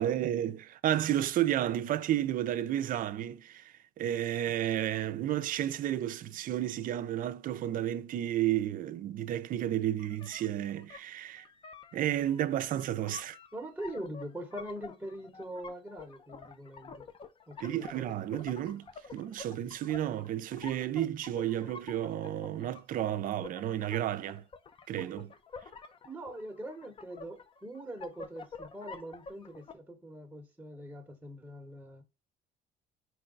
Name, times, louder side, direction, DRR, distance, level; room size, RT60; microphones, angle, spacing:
voice 1, 0.0-11.4 11.9-13.4 17.6-18.9 19.1-24.4 24.9-25.3, right 12 dB, 55° right, 0.4 m, -32 dB
sound 1, 10.0-29.7, left 5 dB, 30° left, 0.5 m, -49 dB
voice 2, 13.5-17.1 17.5-18.0 26.0-32.0, right 1 dB, 10° right, 1.0 m, -43 dB
4.6 x 2.2 x 3.8 m
cardioid pair, 110°, 17 cm